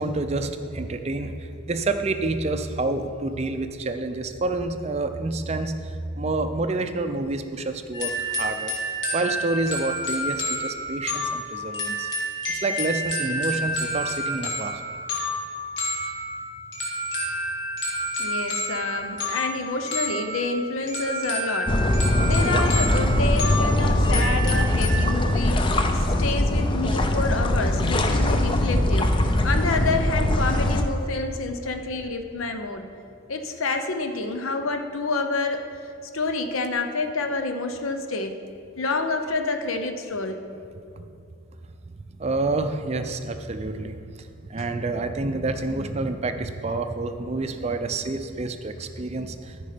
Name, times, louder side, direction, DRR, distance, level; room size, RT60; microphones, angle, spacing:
voice 1, 0.0-8.7 9.1-12.1 12.5-14.7 16.0-16.1 41.0-41.1 42.2-49.7, right 2 dB, 30° right, 8 dB, 0.5 m, -28 dB
sound 1, 7.9-25.1, equal, 55° left, 2.2 m, -29 dB
voice 2, 18.2-21.7 22.2-29.2 29.4-32.9 33.3-35.7 36.1-38.4 38.8-40.4 44.6-44.7, left 3 dB, 75° left, 6 dB, 0.7 m, -28 dB
sound 2, 21.7-30.8, left 1 dB, 25° left, 0.5 m, -21 dB
13.5 x 5.4 x 5.0 m, 2.5 s
head